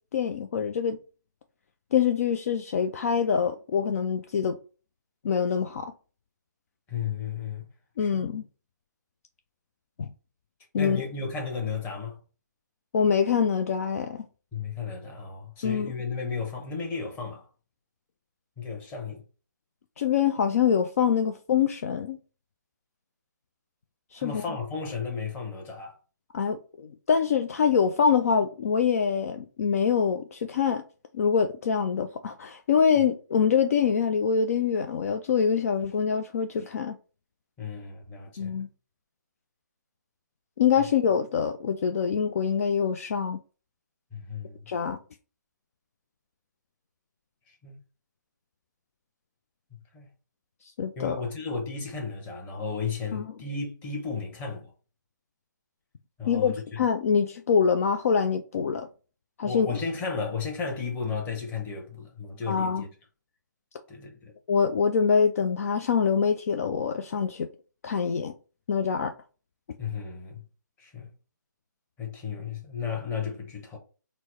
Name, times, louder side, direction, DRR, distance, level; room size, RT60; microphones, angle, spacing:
voice 1, 0.1-1.0 1.9-4.6 5.2-5.9 8.0-8.4 10.0-10.1 10.7-11.1 12.9-14.2 15.6-15.9 20.0-22.2 24.1-24.4 26.3-30.8 31.1-37.0 38.4-38.7 40.6-43.4 44.7-45.0 50.8-51.2 53.1-53.2 56.3-58.9 59.4-59.8 62.5-62.8 64.5-67.5 67.8-68.3 68.7-69.1, left 6 dB, 50° left, 0.4 m, -25 dB
voice 2, 6.9-7.7 8.0-8.3 10.8-12.2 14.5-17.4 18.6-19.2 24.2-25.9 37.6-38.6 44.1-44.7 47.6-47.8 49.9-50.1 51.0-54.7 56.2-56.8 59.4-62.9 63.9-64.3 69.8-70.4 70.8-71.1 72.0-73.8, left 5 dB, 15° left, 1.0 m, -34 dB
4.5 x 2.1 x 4.2 m
figure-of-eight pair, 140°, 10 cm